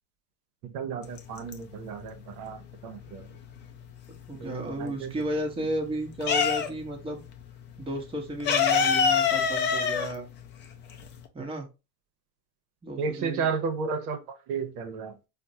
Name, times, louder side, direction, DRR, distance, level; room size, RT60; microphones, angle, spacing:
voice 1, 0.6-3.3 4.4-5.2 13.0-15.2, right 5 dB, 65° right, 0.8 m, -33 dB
sound 1, 1.1-2.0 2.3-4.3 4.6-7.0 7.3-7.4 7.7-11.3, left 6 dB, 25° left, 0.4 m, -25 dB
voice 2, 4.3-7.2 7.8-10.3 11.3-11.7 12.8-13.5, right 1 dB, 10° right, 0.8 m, -33 dB
4.2 x 2.1 x 2.6 m
hypercardioid pair, 105°, 49 cm